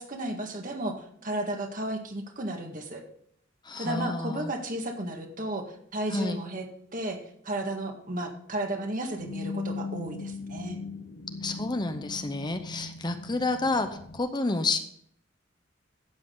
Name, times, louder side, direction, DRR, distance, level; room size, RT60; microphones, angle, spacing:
voice 1, 0.0-3.0 3.8-6.6 6.9-7.2 7.4-10.8, right 1 dB, 45° right, 4 dB, 1.7 m, -33 dB
voice 2, 3.6-4.5 6.1-6.4 11.4-14.8, left 3 dB, 20° left, 8 dB, 0.7 m, -29 dB
sound 1, 9.2-14.2, left 3 dB, 70° left, 1.1 m, -39 dB
12.5 x 8.3 x 3.9 m, 0.67 s
head